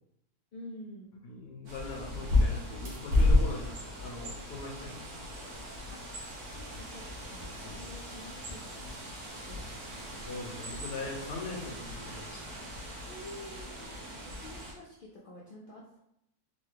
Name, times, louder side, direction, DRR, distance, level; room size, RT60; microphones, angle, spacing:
voice 1, 0.5-1.2 5.9-6.0 6.5-9.0 9.3-10.1 13.0-13.9 14.2-16.0, left 1 dB, 80° left, -5 dB, 0.4 m, -49 dB
voice 2, 1.2-5.4 7.6-7.8 10.3-12.5, left 3 dB, 50° left, 0 dB, 0.8 m, -41 dB
Bird, 1.7-14.7, left 2 dB, 85° right, 1.4 m, -33 dB
3.9 x 2.2 x 3.3 m, 0.80 s
omnidirectional pair, 1.6 m